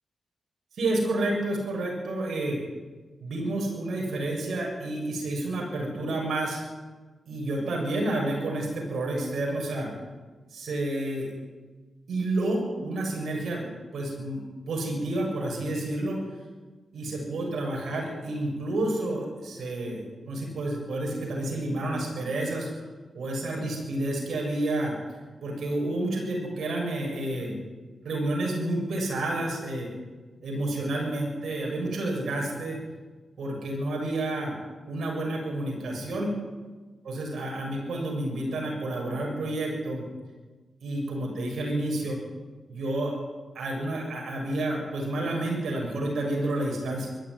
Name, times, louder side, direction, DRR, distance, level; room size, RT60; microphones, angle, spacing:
voice 1, 0.7-2.6 3.2-6.6 7.3-9.9 10.5-11.3 12.1-14.4 14.7-16.2 16.9-22.9 23.1-24.9 25.4-27.5 28.0-29.9 30.4-32.8 33.4-34.5 34.9-36.3 37.0-40.0 40.8-42.2 42.7-43.1 43.5-47.1, right 1 dB, 75° right, -1 dB, 7.2 m, -30 dB
21.5 x 13.5 x 9.9 m, 1.3 s
supercardioid pair, 40°, 0 cm